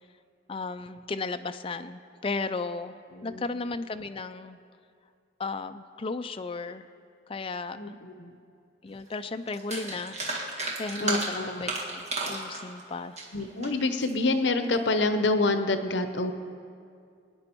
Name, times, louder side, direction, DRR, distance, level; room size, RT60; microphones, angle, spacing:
voice 1, 0.5-4.6 5.4-6.9 7.3-7.8 8.8-13.2, left 3 dB, 30° left, 9 dB, 0.4 m, -35 dB
voice 2, 3.1-3.4 7.7-8.4 11.0-11.7 13.3-16.3, left 2 dB, 75° left, 9 dB, 0.8 m, -27 dB
sound 1, 9.1-9.2 9.5-14.1 14.6-14.9, right 3 dB, 35° right, 1.9 m, -33 dB
22.5 x 9.6 x 4.5 m, 2.4 s
head